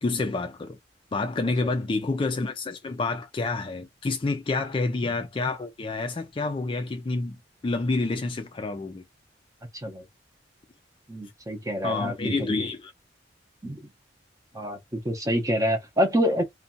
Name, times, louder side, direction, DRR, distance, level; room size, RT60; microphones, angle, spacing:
voice 1, 0.0-0.8 1.1-7.4 7.6-9.0 11.8-12.9, left 3 dB, 25° left, 0.3 m, -28 dB
voice 2, 11.1-12.4 13.6-13.8 14.5-16.4, equal, 20° right, 0.6 m, -26 dB
2.6 x 2.2 x 2.6 m
head